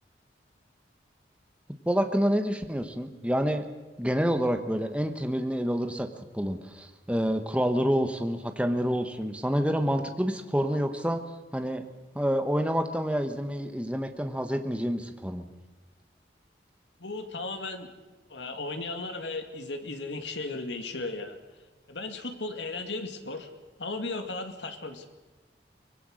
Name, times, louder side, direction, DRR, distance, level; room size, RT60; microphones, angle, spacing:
voice 1, 1.9-3.7 4.0-6.1 6.3-11.2 11.5-11.8 12.1-15.4, equal, 5° right, 6 dB, 1.3 m, -28 dB
voice 2, 17.0-17.9 18.3-21.4 21.9-23.5 23.8-25.1, left 3 dB, 85° left, 6 dB, 2.2 m, -35 dB
24.0 x 21.0 x 6.5 m, 1.2 s
head